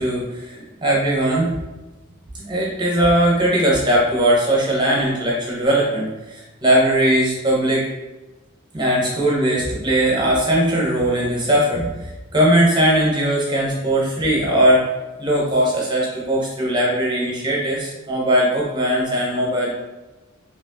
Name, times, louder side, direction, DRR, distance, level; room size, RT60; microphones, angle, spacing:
voice 1, 0.0-1.5 2.4-7.8 8.7-14.8 15.2-19.7, right 1 dB, 20° right, -4 dB, 1.0 m, -19 dB
4.2 x 3.4 x 2.7 m, 1.1 s
head